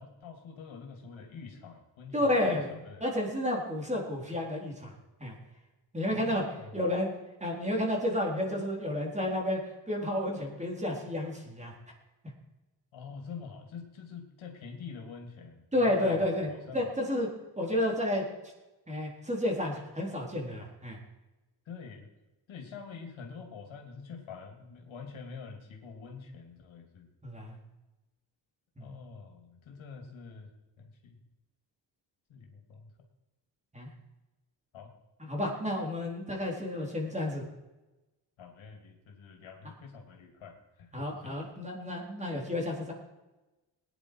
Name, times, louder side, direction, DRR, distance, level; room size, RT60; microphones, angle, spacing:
voice 1, 0.0-3.0 6.1-6.8 12.9-16.9 21.6-22.1 22.5-27.1 28.8-30.5 30.8-31.2 32.3-32.9 34.7-34.9 38.4-41.4, left 5 dB, 80° left, 2 dB, 2.9 m, -46 dB
voice 2, 2.1-2.7 3.0-4.9 5.2-5.4 5.9-6.4 6.7-7.1 7.4-9.6 9.9-11.7 15.7-17.3 17.6-18.2 18.9-21.0 27.2-27.6 28.8-28.9 33.7-33.9 35.2-37.4 40.9-42.9, left 1 dB, 15° right, -1 dB, 3.8 m, -31 dB
19.0 x 10.0 x 4.8 m, 1.1 s
cardioid pair, 100°, 47 cm